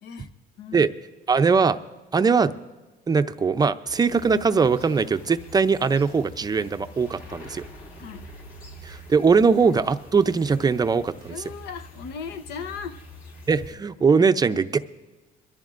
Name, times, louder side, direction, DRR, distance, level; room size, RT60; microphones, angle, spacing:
voice 1, 0.0-0.3 0.6-0.9 8.0-8.3 11.3-13.0, left 6 dB, 75° left, 0.8 m, -37 dB
voice 2, 1.3-1.8 2.1-2.5 3.1-7.6 8.8-11.3 13.5-14.8, right 5 dB, 25° right, 0.5 m, -21 dB
sound 1, 3.9-13.7, equal, 60° left, 3.4 m, -45 dB
22.5 x 14.0 x 2.5 m
cardioid pair, 110°, 17 cm